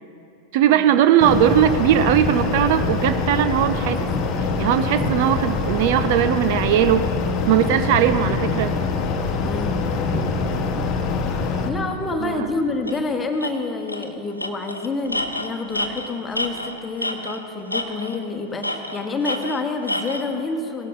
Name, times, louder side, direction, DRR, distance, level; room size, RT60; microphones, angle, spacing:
voice 1, 0.5-4.1 4.6-7.1 7.5-8.7 12.2-12.5, right 10 dB, 50° right, 11 dB, 0.4 m, -19 dB
sound 1, 1.2-11.7, left 4 dB, 35° left, 1.0 m, -24 dB
voice 2, 9.3-10.5 11.6-20.9, left 3 dB, 15° left, 5 dB, 1.2 m, -28 dB
Tools, 12.9-13.0 13.4-13.5 13.9-14.1 14.4-17.4 17.7-18.2 18.6-20.3, left 1 dB, 85° left, 0.7 m, -28 dB
17.5 x 11.5 x 4.0 m, 2.6 s
figure-of-eight pair, 90°, 0 cm